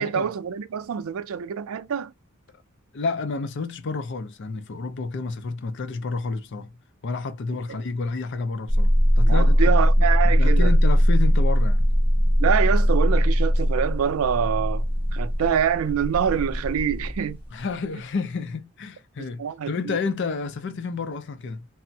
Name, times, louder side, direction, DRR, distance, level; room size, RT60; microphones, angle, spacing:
voice 1, 0.0-2.1 7.7-7.8 9.2-10.7 12.4-14.8 15.1-17.4 19.2-20.0, right 8 dB, 85° right, 0.4 m, -25 dB
voice 2, 2.9-9.7 10.2-11.9 17.5-21.7, left 4 dB, 60° left, 0.5 m, -30 dB
sound 1, 8.7-17.6, equal, 10° right, 1.2 m, -20 dB
3.3 x 2.1 x 2.6 m
head